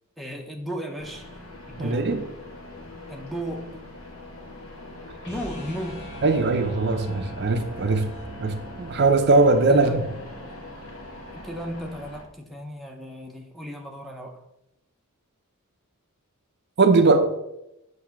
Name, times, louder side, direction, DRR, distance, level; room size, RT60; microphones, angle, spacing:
voice 1, 0.2-1.3 1.7-2.1 3.1-3.8 5.3-6.1 9.7-10.1 11.3-14.5, equal, ahead, 0.7 m, -35 dB
sound 1, 1.0-12.2, left 1 dB, 70° left, 1.4 m, -43 dB
voice 2, 1.8-2.2 6.2-8.1 8.4-10.1 16.8-17.3, right 3 dB, 50° right, 0.5 m, -20 dB
sound 2, 5.2-11.3, right 1 dB, 50° left, 2.1 m, -42 dB
7.8 x 2.7 x 5.7 m
head